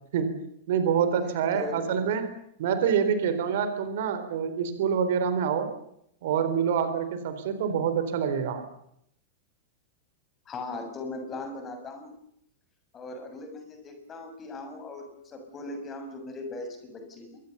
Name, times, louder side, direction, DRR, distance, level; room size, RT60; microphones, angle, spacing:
voice 1, 0.7-2.3 2.6-5.7 6.2-8.6, right 7 dB, 55° right, 10 dB, 4.0 m, -26 dB
voice 2, 1.5-1.9 10.4-12.1 12.9-17.4, left 2 dB, 25° left, 6 dB, 6.7 m, -39 dB
26.5 x 22.0 x 7.1 m, 0.73 s
figure-of-eight pair, 90°, 0 cm